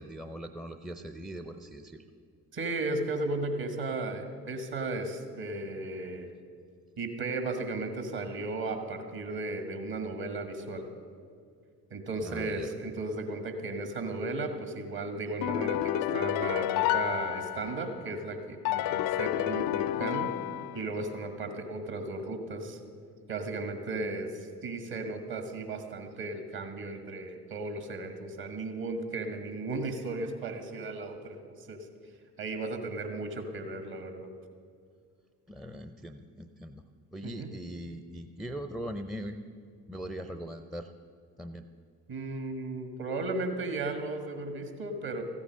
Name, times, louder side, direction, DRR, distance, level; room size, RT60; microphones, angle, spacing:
voice 1, 0.0-2.0 12.2-12.7 35.5-36.8 37.1-39.4 39.9-40.9 41.4-41.7, equal, ahead, 8 dB, 0.5 m, -40 dB
voice 2, 2.5-6.3 7.0-10.8 11.9-20.3 20.7-22.8 23.3-31.8 32.4-34.3 37.2-37.5 42.1-45.2, right 2 dB, 50° right, 6 dB, 1.8 m, -35 dB
sound 1, 15.4-18.0 18.6-21.1, left 13 dB, 50° left, 0.5 m, -30 dB
14.0 x 8.6 x 6.4 m, 2.2 s
figure-of-eight pair, 45°, 47 cm